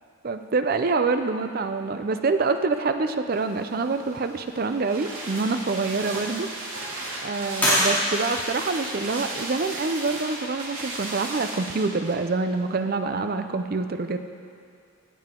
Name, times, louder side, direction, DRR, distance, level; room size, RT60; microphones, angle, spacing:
voice 1, 0.2-6.5 6.9-14.2, right 3 dB, 45° right, 8 dB, 0.5 m, -26 dB
sound 1, 3.3-11.7, equal, 10° left, 2.7 m, -32 dB
sound 2, 4.1-12.2 12.5-12.6, right 2 dB, 80° right, 2.2 m, -35 dB
16.5 x 7.8 x 3.7 m, 2.4 s
head